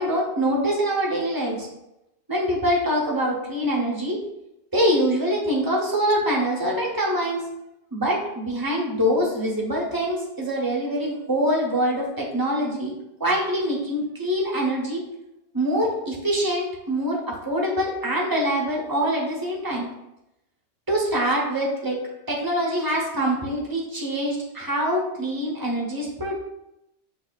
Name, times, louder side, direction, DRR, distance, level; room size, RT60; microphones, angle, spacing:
voice 1, 0.0-1.7 2.3-4.2 4.7-7.4 7.9-12.9 13.2-15.0 15.5-19.9 20.9-22.0 22.3-26.3, equal, 20° right, -3 dB, 0.8 m, -24 dB
6.2 x 2.9 x 2.4 m, 0.88 s
omnidirectional pair, 1.3 m